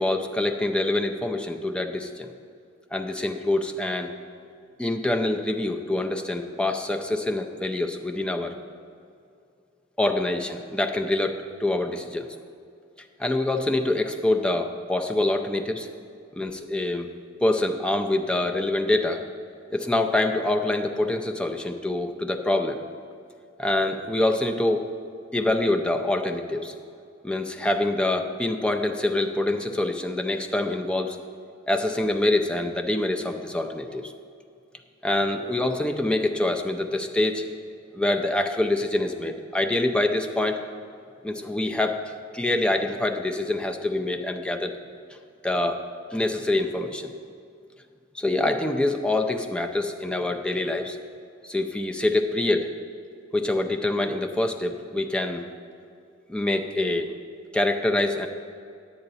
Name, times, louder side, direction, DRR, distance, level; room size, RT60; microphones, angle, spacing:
voice 1, 0.0-2.3 2.9-4.1 4.8-8.5 10.0-12.3 13.2-15.9 16.4-17.1 17.4-19.2 19.7-22.8 23.6-24.9 25.3-26.8 27.2-31.2 31.7-34.1 35.0-37.4 37.9-40.6 41.2-42.0 42.3-44.8 45.4-45.8 46.1-47.1 48.1-51.0 51.4-52.7 53.3-55.5 56.3-57.1 57.5-58.3, left 2 dB, 5° left, 4 dB, 0.5 m, -25 dB
10.0 x 8.7 x 4.1 m, 2.5 s
head